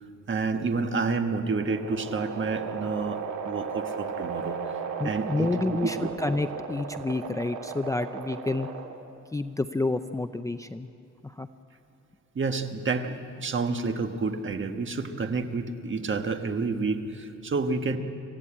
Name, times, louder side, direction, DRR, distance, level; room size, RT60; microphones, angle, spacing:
voice 1, 0.3-4.6 5.0-5.5 5.8-6.1 12.3-18.0, right 4 dB, 40° right, 6 dB, 1.4 m, -29 dB
sound 1, 1.2-9.2, right 5 dB, 85° right, 1.8 m, -36 dB
voice 2, 5.0-8.7 9.3-10.9 11.2-11.5, left 2 dB, 10° left, 9 dB, 0.5 m, -29 dB
26.5 x 15.0 x 8.8 m, 2.6 s
wide cardioid pair, 125°, 29 cm